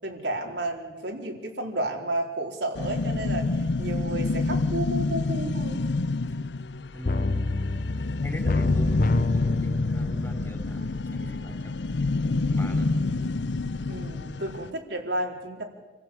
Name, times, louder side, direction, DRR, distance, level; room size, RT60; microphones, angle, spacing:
voice 1, 0.0-3.5 3.8-5.8 13.9-15.6, right 1 dB, 90° right, 0 dB, 4.2 m, -32 dB
sound 1, 2.8-14.7, left 3 dB, 90° left, 0.7 m, -28 dB
voice 2, 6.9-7.4 8.2-12.1 12.5-13.1 13.9-14.0, left 1 dB, 15° left, 4 dB, 4.1 m, -41 dB
sound 2, 7.1-11.7 12.1-12.2, left 2 dB, 50° left, 0.7 m, -28 dB
28.0 x 16.0 x 8.6 m, 1.3 s
head